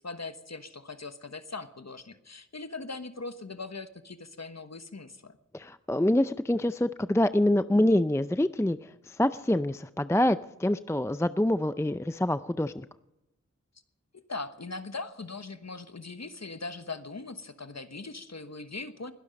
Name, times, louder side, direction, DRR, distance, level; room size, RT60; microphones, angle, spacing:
voice 1, 0.0-5.4 14.1-19.1, left 3 dB, 65° left, 10 dB, 1.2 m, -40 dB
voice 2, 5.5-12.9, left 1 dB, 10° left, 13 dB, 0.4 m, -26 dB
21.0 x 12.5 x 5.2 m, 0.90 s
wide cardioid pair, 45°, 29 cm